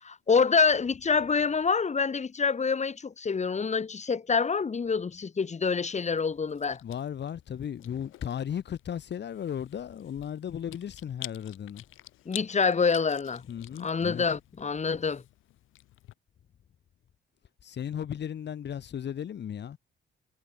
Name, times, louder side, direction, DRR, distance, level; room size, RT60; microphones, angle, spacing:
voice 1, 0.0-6.8 12.2-13.4 13.8-15.2, left 5 dB, 35° left, 3.1 m, -26 dB
Chewing mastication, 5.9-16.1, left 15 dB, 90° left, 5.8 m, -49 dB
voice 2, 6.8-11.8 13.5-14.2 17.6-19.8, left 9 dB, 60° left, 7.9 m, -35 dB
cardioid pair, 90°, 20 cm